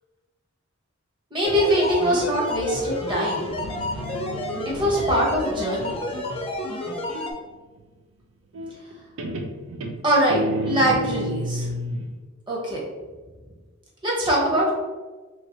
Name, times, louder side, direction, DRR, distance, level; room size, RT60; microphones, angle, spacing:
voice 1, 1.3-3.5 4.6-6.0 10.0-11.7 12.5-12.8 14.0-14.7, equal, 25° right, -4 dB, 0.9 m, -22 dB
sound 1, 1.4-7.3, left 1 dB, 30° left, 0.5 m, -30 dB
Guitar, 3.4-7.0 8.5-8.9 9.2-12.1, right 1 dB, 85° right, 0.4 m, -31 dB
3.2 x 3.1 x 2.8 m, 1.3 s
head